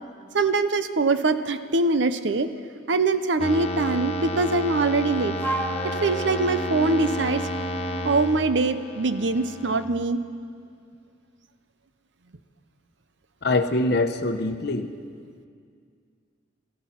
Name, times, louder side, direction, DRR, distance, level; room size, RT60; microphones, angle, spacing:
voice 1, 0.3-2.5 2.9-5.4 5.8-7.4 8.0-10.2, right 3 dB, 75° right, 11 dB, 0.7 m, -23 dB
sound 1, 3.4-9.9, equal, 35° left, 0.8 m, -31 dB
Wind instrument woodwind instrument, 5.4-8.3, right 1 dB, 10° left, 1.4 m, -33 dB
voice 2, 13.4-14.9, left 2 dB, 60° left, 8 dB, 0.9 m, -24 dB
17.0 x 14.0 x 5.9 m, 2.2 s
head